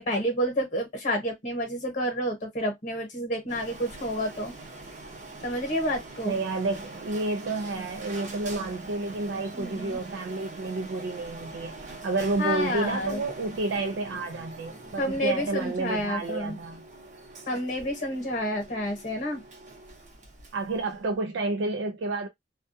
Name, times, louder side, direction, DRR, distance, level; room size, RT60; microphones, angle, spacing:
voice 1, 0.0-4.5 5.4-6.4 9.5-10.0 12.4-13.2 15.0-16.6 17.5-19.4, equal, 45° left, 0.9 m, -29 dB
Printer, 3.5-21.2, right 2 dB, 40° right, 0.8 m, -44 dB
voice 2, 6.3-16.8 20.5-22.3, right 3 dB, 75° right, 0.4 m, -30 dB
2.2 x 2.2 x 2.6 m
head